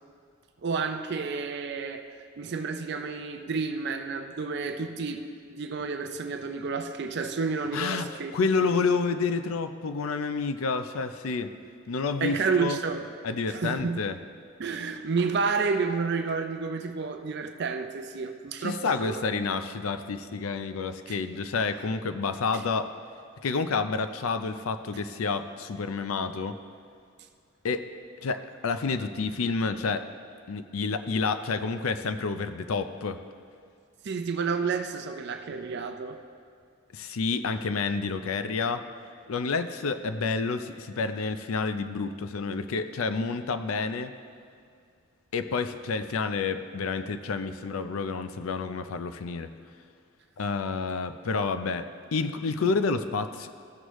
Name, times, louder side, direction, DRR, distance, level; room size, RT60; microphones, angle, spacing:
voice 1, 0.6-8.7 12.2-13.1 13.5-14.0 14.6-19.4 21.1-21.2 22.5-22.6 34.0-36.2, right 4 dB, 55° right, 7 dB, 0.5 m, -30 dB
voice 2, 7.7-8.1 8.3-11.5 11.9-12.8 13.2-14.1 18.6-22.9 23.4-26.6 27.6-27.9 28.2-30.0 30.5-33.2 36.9-38.8 39.3-44.1 45.3-49.5 50.4-53.5, left 4 dB, 85° left, 10 dB, 0.5 m, -29 dB
15.0 x 6.3 x 3.1 m, 2.2 s
head